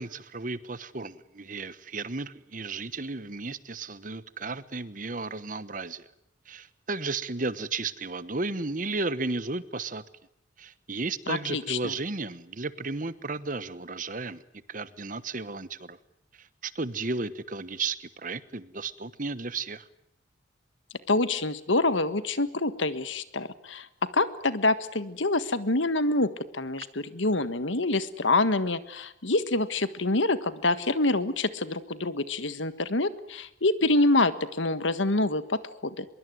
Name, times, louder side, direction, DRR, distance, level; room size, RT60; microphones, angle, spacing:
voice 1, 0.0-6.1 6.5-10.0 10.6-14.4 14.7-16.0 16.4-19.9, right 3 dB, 45° right, 15 dB, 1.1 m, -34 dB
voice 2, 11.3-11.9 21.1-23.9 24.1-36.0, left 2 dB, 80° left, 13 dB, 1.6 m, -26 dB
24.5 x 22.5 x 9.5 m, 0.77 s
head